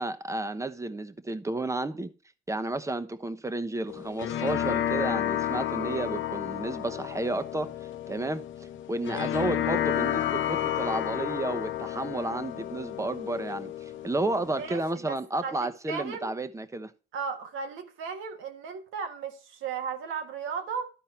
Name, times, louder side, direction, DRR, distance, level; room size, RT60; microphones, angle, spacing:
voice 1, 0.0-2.1 2.5-7.7 8.1-8.4 8.9-16.9, right 2 dB, 15° right, 0.9 m, -32 dB
sound 1, 3.9-14.8, left 11 dB, 80° left, 0.8 m, -31 dB
voice 2, 14.5-16.3 17.1-20.9, right 6 dB, 90° right, 1.5 m, -36 dB
12.0 x 4.6 x 4.4 m
cardioid pair, 90°, 20 cm